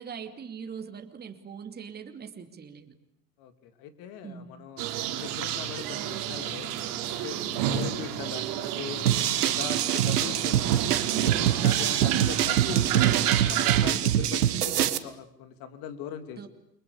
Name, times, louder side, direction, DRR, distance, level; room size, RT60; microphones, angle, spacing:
voice 1, 0.0-2.9 4.2-4.5 11.1-11.5 16.4-16.5, right 7 dB, 20° right, 5 dB, 2.7 m, -41 dB
voice 2, 3.4-6.7 7.1-9.1 9.4-16.4, left 8 dB, 45° left, 10 dB, 3.2 m, -41 dB
sound 1, 4.8-13.9, right 11 dB, 45° right, 3.4 m, -30 dB
sound 2, 9.1-15.0, right 11 dB, 70° right, 1.7 m, -24 dB
29.5 x 23.5 x 8.5 m, 0.71 s
figure-of-eight pair, 85°, 48 cm